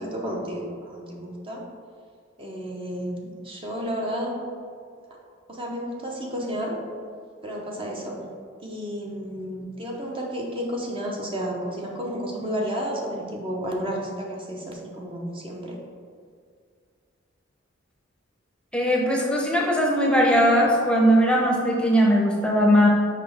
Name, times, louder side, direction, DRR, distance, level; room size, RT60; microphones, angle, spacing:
voice 1, 0.0-1.6 2.4-4.4 5.5-6.8 7.4-8.2 8.6-15.8, equal, 30° right, -1 dB, 0.8 m, -31 dB
voice 2, 18.7-22.9, equal, 5° left, -2 dB, 0.8 m, -19 dB
5.9 x 4.8 x 3.4 m, 2.1 s
head